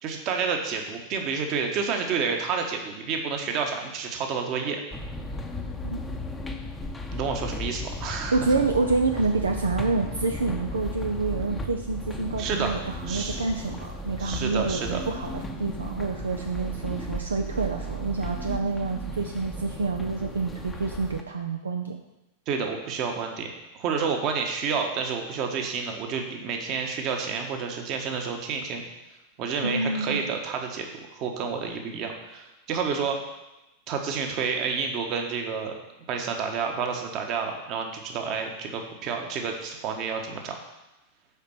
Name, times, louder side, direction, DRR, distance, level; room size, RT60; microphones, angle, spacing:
voice 1, 0.0-4.8 7.1-8.4 12.4-12.7 13.1-13.4 14.2-15.0 22.5-28.8 29.4-30.9 31.1-33.2 33.9-35.7 36.1-40.6, right 5 dB, 40° right, 3 dB, 1.3 m, -29 dB
sound 1, 4.9-21.2, left 1 dB, 15° left, 0.8 m, -35 dB
voice 2, 8.3-22.0 29.6-30.2, right 3 dB, 75° right, 4 dB, 0.6 m, -28 dB
7.3 x 5.3 x 6.0 m, 0.96 s
figure-of-eight pair, 90°, 0 cm